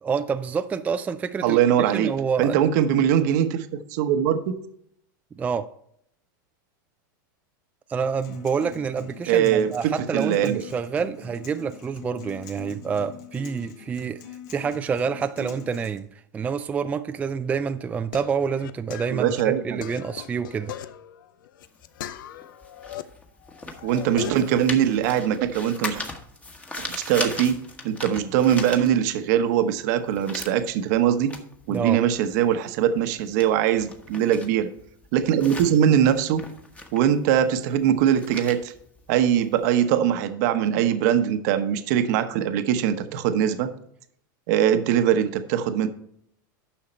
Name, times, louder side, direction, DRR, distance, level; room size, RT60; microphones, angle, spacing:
voice 1, 0.0-1.6 1.9-2.6 5.4-5.7 7.9-14.2 14.5-16.1 16.3-20.7 31.7-32.0, right 6 dB, 15° right, 10 dB, 0.3 m, -27 dB
voice 2, 1.4-2.1 2.4-4.6 9.3-10.6 19.1-19.8 23.8-26.1 26.8-27.6 27.8-31.3 31.7-34.7 35.1-36.4 36.9-38.7 39.1-43.7 44.5-45.9, right 9 dB, 60° right, 9 dB, 1.0 m, -22 dB
Acoustic guitar, 8.0-16.0, left 6 dB, 60° left, 2.0 m, -43 dB
sound 1, 17.6-23.0 23.4-24.6, left 11 dB, 85° left, 0.6 m, -39 dB
sound 2, 21.6-29.4 29.7-39.8, left 2 dB, 10° left, 1.2 m, -38 dB
10.0 x 6.4 x 4.4 m, 0.69 s
supercardioid pair, 135°, 11 cm